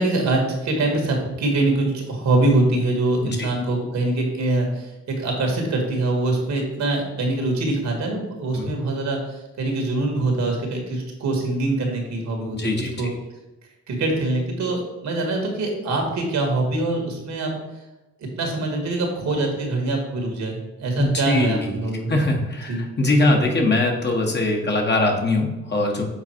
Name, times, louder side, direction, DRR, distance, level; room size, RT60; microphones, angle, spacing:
voice 1, 0.0-12.6 13.0-13.1 13.9-17.6 18.2-22.1 22.7-22.8, right 2 dB, 65° right, 2 dB, 1.9 m, -24 dB
voice 2, 12.5-12.9 21.0-21.8 22.1-26.0, left 2 dB, 35° left, 1 dB, 1.4 m, -21 dB
7.2 x 3.9 x 4.5 m, 1.0 s
cardioid pair, 90°, 30 cm